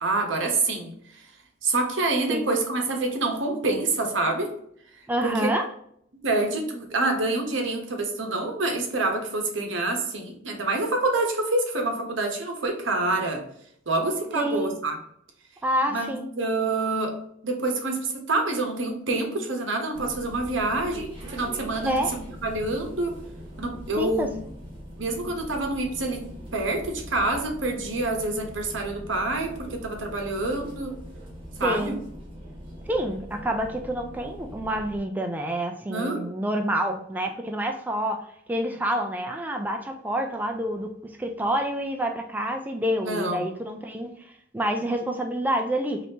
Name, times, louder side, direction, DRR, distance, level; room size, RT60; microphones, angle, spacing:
voice 1, 0.0-0.9 1.6-4.5 5.2-5.5 6.2-13.4 13.9-15.0 15.9-23.2 23.6-24.3 25.0-30.9 31.6-31.9 35.9-36.3 43.0-43.5, right 2 dB, 70° right, 3 dB, 1.0 m, -27 dB
voice 2, 5.1-5.7 14.4-14.8 15.6-16.3 21.8-22.1 24.0-24.3 31.6-32.0 32.9-46.0, right 1 dB, 10° right, 3 dB, 0.3 m, -28 dB
sound 1, 19.9-35.0, equal, 30° right, 1.5 m, -42 dB
4.1 x 3.3 x 2.8 m, 0.69 s
head